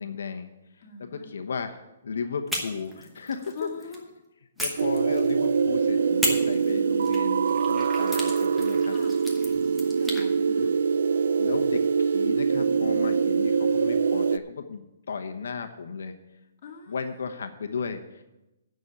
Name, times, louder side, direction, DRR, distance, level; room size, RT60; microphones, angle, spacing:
voice 1, 0.0-3.7 4.6-9.0 10.6-10.7 11.3-16.2 16.9-18.2, left 5 dB, 75° left, 7 dB, 1.0 m, -35 dB
voice 2, 0.8-1.2 3.5-4.1 8.9-9.1 9.8-10.7 16.6-17.0, left 4 dB, 35° left, -1 dB, 2.2 m, -42 dB
sound 1, 2.5-4.0 4.6-5.6 6.2-10.3, equal, ahead, 1.0 m, -35 dB
sound 2, 4.8-14.4, right 6 dB, 70° right, 0.4 m, -24 dB
9.2 x 6.2 x 8.5 m, 0.98 s
hypercardioid pair, 170°, 0 cm